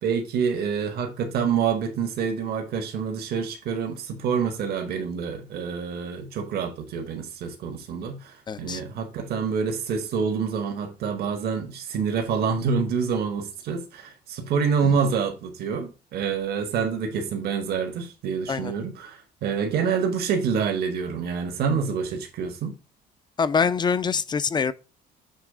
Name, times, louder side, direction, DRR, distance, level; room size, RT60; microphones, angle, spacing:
voice 1, 0.0-22.7, right 6 dB, 65° right, 1.6 m, -27 dB
voice 2, 8.5-8.8 14.8-14.9 18.5-18.7 23.4-24.7, left 5 dB, 25° left, 0.5 m, -24 dB
7.4 x 3.2 x 4.9 m
cardioid pair, 110°, 17 cm